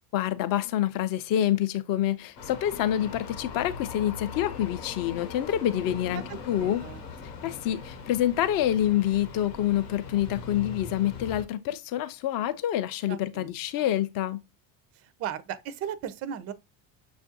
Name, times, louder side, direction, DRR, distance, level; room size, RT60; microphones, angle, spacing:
voice 1, 0.1-6.8 7.4-14.4, left 11 dB, 45° left, 0.5 m, -27 dB
sound 1, 2.4-11.4, left 5 dB, 90° left, 0.9 m, -41 dB
voice 2, 6.1-7.0 13.1-14.0 14.9-16.5, right 9 dB, 35° right, 0.4 m, -37 dB
6.0 x 2.5 x 2.6 m
supercardioid pair, 90°, 49 cm